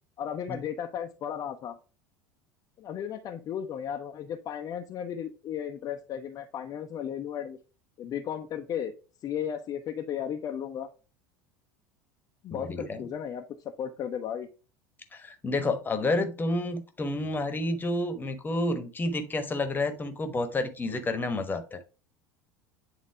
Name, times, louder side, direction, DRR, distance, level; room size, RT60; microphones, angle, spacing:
voice 1, 0.2-1.8 2.8-7.6 8.0-8.9 9.2-10.9 12.4-13.4 13.8-14.5, left 9 dB, 35° left, 4 dB, 0.6 m, -35 dB
voice 2, 12.5-13.0 15.1-21.8, left 2 dB, 20° left, 9 dB, 1.1 m, -30 dB
8.5 x 3.9 x 3.4 m, 0.33 s
figure-of-eight pair, 70°, 10 cm